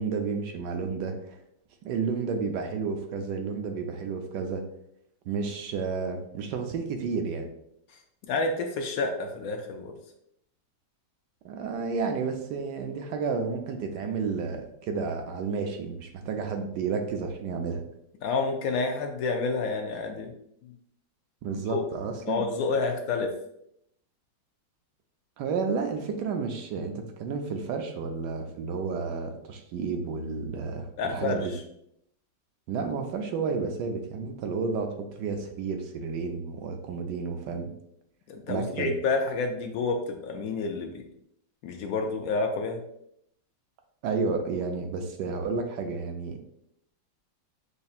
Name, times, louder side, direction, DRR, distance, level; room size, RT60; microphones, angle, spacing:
voice 1, 0.0-1.4 1.8-4.6 5.3-7.5 11.4-17.8 21.4-22.4 25.4-31.5 32.7-37.7 38.5-38.9 44.0-46.4, right 5 dB, 75° right, 4 dB, 1.2 m, -31 dB
voice 2, 8.3-9.9 18.2-20.3 21.7-21.8 22.2-23.3 31.0-31.4 38.3-41.0 41.6-42.8, left 3 dB, 75° left, 4 dB, 0.8 m, -29 dB
6.4 x 2.7 x 2.4 m, 0.74 s
omnidirectional pair, 1.9 m